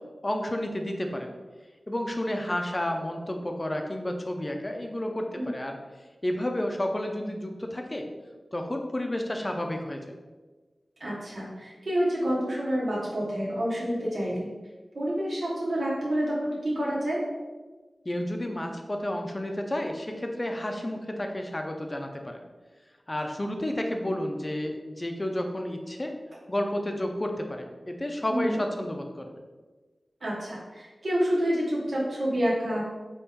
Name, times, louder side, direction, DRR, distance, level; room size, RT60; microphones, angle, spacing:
voice 1, 0.2-1.3 1.9-5.8 6.2-8.1 8.5-10.2 18.0-22.4 23.1-26.1 26.5-29.3, left 1 dB, 25° left, 3 dB, 0.6 m, -31 dB
voice 2, 11.0-14.5 14.9-17.2 28.3-28.6 30.2-32.8, equal, 65° right, -6 dB, 1.3 m, -28 dB
4.4 x 3.1 x 3.6 m, 1.3 s
wide cardioid pair, 70°, 0 cm